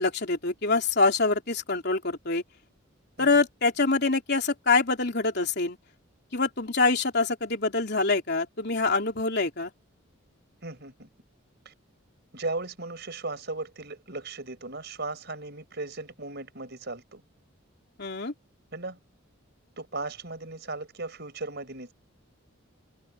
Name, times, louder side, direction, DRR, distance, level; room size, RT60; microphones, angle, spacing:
voice 1, 0.0-2.4 3.2-5.8 6.3-9.7 18.0-18.3, left 3 dB, 50° left, 3.4 m, -25 dB
voice 2, 10.6-11.1 11.7-11.8 12.3-17.2 18.7-19.0 19.8-21.9, right 3 dB, 50° right, 5.3 m, -37 dB
head